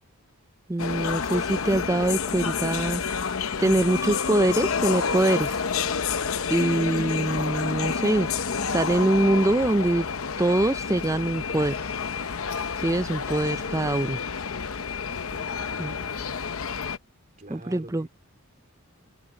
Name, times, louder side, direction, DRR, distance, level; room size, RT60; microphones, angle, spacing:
voice 1, 0.7-3.2 3.6-5.6 6.5-8.3 8.7-10.1 10.4-11.8 12.8-14.2 15.8-16.0 17.5-18.1, right 1 dB, 15° right, 0.4 m, -24 dB
sound 1, 0.8-17.0, left 5 dB, 70° left, 0.8 m, -29 dB
voice 2, 15.3-16.5 17.4-18.1, right 1 dB, 35° right, 3.2 m, -47 dB
open air
head